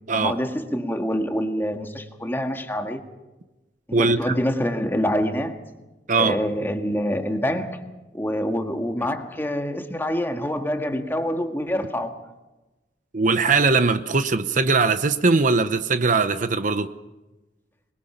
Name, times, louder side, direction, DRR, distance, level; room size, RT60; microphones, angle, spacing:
voice 1, 0.1-3.0 3.9-5.6 6.1-7.8 8.1-12.1, equal, 15° left, 1.8 m, -26 dB
voice 2, 3.9-4.4 6.1-6.3 13.1-16.9, right 4 dB, 50° right, 0.9 m, -20 dB
26.0 x 21.5 x 5.8 m
head